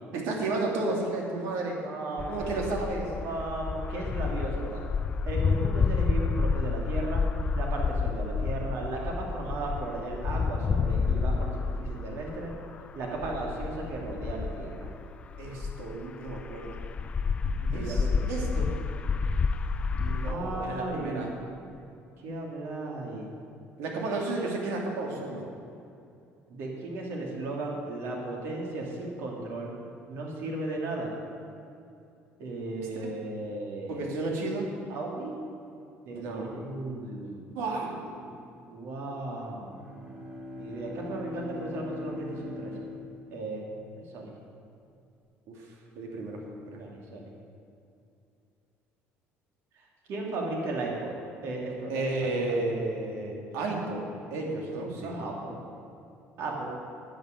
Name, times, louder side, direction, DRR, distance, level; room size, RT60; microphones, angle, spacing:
voice 1, 0.1-1.9 2.3-3.1 15.4-16.8 17.7-18.7 20.0-21.3 23.8-25.4 32.9-33.1 33.9-34.7 36.1-36.5 37.5-38.3 45.5-45.6 46.0-46.4 46.7-46.8 51.9-54.0 54.3-55.1, right 2 dB, 80° right, 0 dB, 2.9 m, -32 dB
voice 2, 1.8-2.7 3.2-4.8 5.3-7.2 7.5-12.5 12.9-14.9 17.6-18.3 20.2-21.2 22.2-23.3 26.5-29.7 30.1-31.1 32.4-34.1 34.9-35.3 36.0-37.4 38.6-39.9 40.5-42.7 43.3-43.6 44.0-44.3 46.8-47.3 50.1-51.1 51.4-52.1 52.5-52.6 55.0-55.6 56.4-56.7, right 2 dB, 60° right, -1 dB, 3.0 m, -35 dB
sound 1, 2.2-16.0 16.3-20.3, left 5 dB, 25° left, 0.4 m, -29 dB
Bowed string instrument, 39.6-43.9, left 2 dB, 25° right, 1.9 m, -41 dB
10.5 x 9.3 x 8.5 m, 2.6 s
cardioid pair, 160°, 5 cm